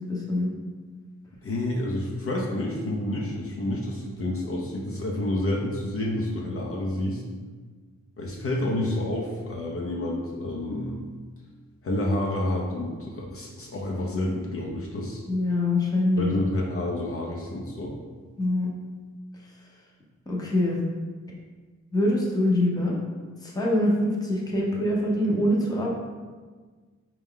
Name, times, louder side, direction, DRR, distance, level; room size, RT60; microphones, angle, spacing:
voice 1, 0.1-0.5 15.3-16.3 18.4-18.7 20.3-20.8 21.9-23.0 23.4-25.9, left 1 dB, 15° left, -3 dB, 0.7 m, -24 dB
voice 2, 1.4-7.2 8.2-11.0 11.8-15.2 16.2-17.9, left 1 dB, 50° left, -2 dB, 0.6 m, -29 dB
4.1 x 2.3 x 3.7 m, 1.4 s
wide cardioid pair, 100°, 29 cm